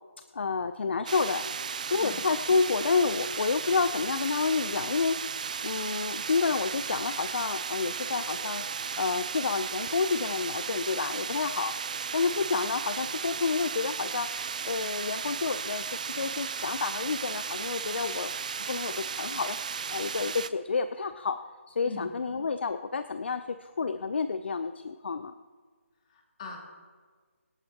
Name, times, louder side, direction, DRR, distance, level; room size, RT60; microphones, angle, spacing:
voice 1, 0.3-5.2 5.6-8.6 9.0-11.7 12.1-18.3 18.7-19.6 19.9-21.4 21.7-25.3, left 4 dB, 50° left, 11 dB, 0.5 m, -29 dB
sound 1, 1.1-20.5, right 6 dB, 35° right, 0.4 m, -35 dB
sound 2, 7.9-16.5, right 2 dB, 75° right, 2.2 m, -55 dB
voice 2, 26.1-26.6, left 3 dB, 30° left, -1 dB, 2.4 m, -41 dB
24.5 x 9.0 x 2.9 m, 1.5 s
figure-of-eight pair, 160°, 7 cm